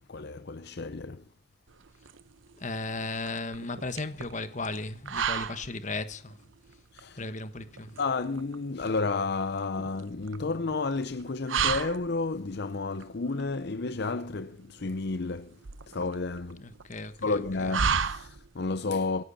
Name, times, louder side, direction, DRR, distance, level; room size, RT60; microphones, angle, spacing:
voice 1, 0.1-1.2 6.9-7.2 8.0-15.5 15.9-16.6 17.2-19.2, left 3 dB, 55° left, 0.7 m, -31 dB
sound 1, 1.7-18.7, right 6 dB, 75° right, 0.9 m, -35 dB
voice 2, 2.6-6.4 7.2-8.0 16.6-17.7, left 3 dB, 40° left, 1.3 m, -36 dB
26.0 x 10.5 x 4.1 m
head